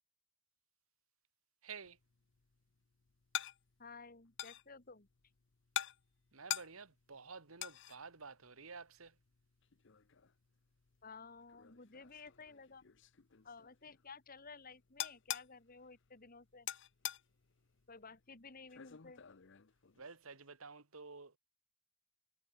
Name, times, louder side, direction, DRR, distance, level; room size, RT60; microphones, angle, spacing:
voice 1, 1.6-2.0 6.3-9.1 20.0-21.3, right 5 dB, 85° right, 2.0 m, -51 dB
sound 1, 1.8-20.4, left 11 dB, 60° left, 0.8 m, -48 dB
voice 2, 3.8-5.1 11.0-12.8 13.4-16.7 17.9-19.2, left 4 dB, 45° left, 2.1 m, -54 dB
head